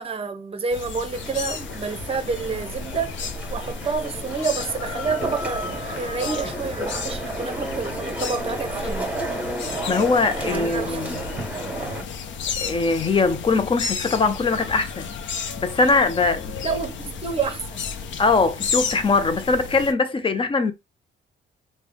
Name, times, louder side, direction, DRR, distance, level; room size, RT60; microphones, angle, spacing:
voice 1, 0.0-3.2 3.5-9.1 10.4-11.0 16.6-17.8, right 5 dB, 30° right, 0.8 m, -29 dB
sound 1, 0.7-19.9, left 5 dB, 70° left, 0.6 m, -33 dB
sound 2, 1.1-12.0, right 1 dB, 5° right, 1.5 m, -33 dB
voice 2, 9.9-11.3 12.6-15.1 15.6-16.6 18.2-20.7, left 4 dB, 25° left, 0.5 m, -21 dB
3.3 x 2.1 x 3.5 m
cardioid pair, 90°, 20 cm